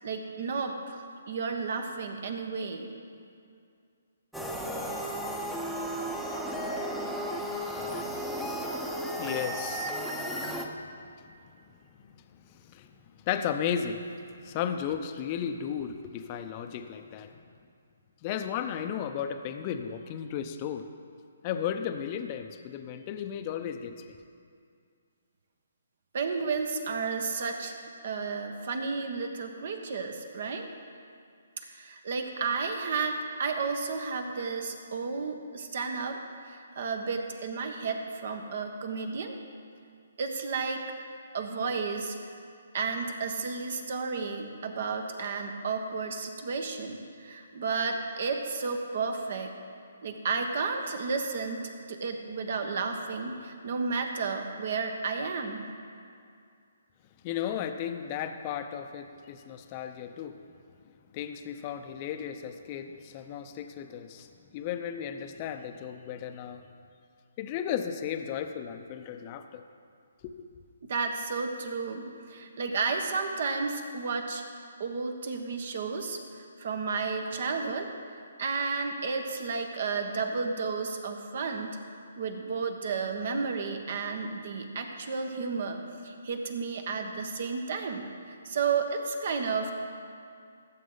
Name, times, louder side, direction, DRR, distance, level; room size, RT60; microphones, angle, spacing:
voice 1, 0.0-2.9 26.1-30.7 31.6-36.2 36.5-39.4 40.2-40.8 41.3-42.1 42.7-49.5 50.0-55.7 70.9-74.4 74.8-76.2 76.6-77.9 78.4-81.8 82.2-89.7, right 4 dB, 55° right, 5 dB, 1.3 m, -32 dB
sound 1, 4.3-10.7, equal, ahead, 0.8 m, -34 dB
voice 2, 9.2-11.4 11.9-12.0 12.3-12.9 13.3-17.4 18.2-20.9 21.4-24.2 57.2-60.4 61.1-66.6 67.4-69.6 70.2-70.3, left 8 dB, 30° left, 8 dB, 0.7 m, -35 dB
17.0 x 7.5 x 4.0 m, 2.3 s
figure-of-eight pair, 140°, 0 cm